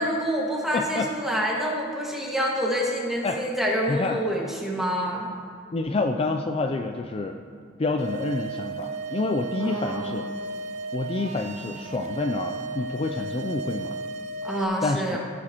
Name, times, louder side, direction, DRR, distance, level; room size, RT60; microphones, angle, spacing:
voice 1, 0.0-5.3 9.6-10.2 14.4-15.2, equal, ahead, -4 dB, 1.7 m, -27 dB
voice 2, 0.7-1.1 3.2-3.4 3.9-4.2 5.7-7.4 7.8-10.3 10.9-14.0 14.8-15.2, left 3 dB, 30° left, 5 dB, 0.4 m, -28 dB
sound 1, 8.0-14.6, right 3 dB, 40° right, 0.5 m, -34 dB
16.0 x 7.8 x 3.0 m, 2.3 s
head